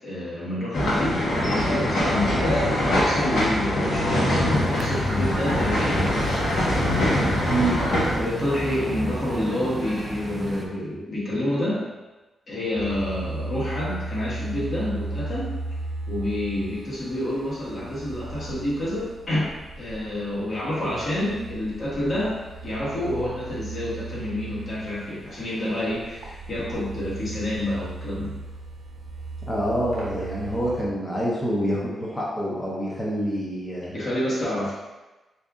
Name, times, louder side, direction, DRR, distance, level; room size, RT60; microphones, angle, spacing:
voice 1, 0.0-6.0 7.8-11.9 12.5-15.5 16.1-28.4 33.9-34.7, left 1 dB, 40° left, -8 dB, 1.3 m, -28 dB
sound 1, 0.7-8.2, left 1 dB, 70° left, 1.0 m, -23 dB
sound 2, 4.5-10.7, right 1 dB, 15° right, 0.4 m, -33 dB
sound 3, 12.7-30.8, right 2 dB, 60° right, 0.9 m, -36 dB
voice 2, 29.5-33.9, right 1 dB, 10° left, -6 dB, 0.8 m, -26 dB
3.5 x 2.7 x 3.6 m, 1.1 s
wide cardioid pair, 160°, 0 cm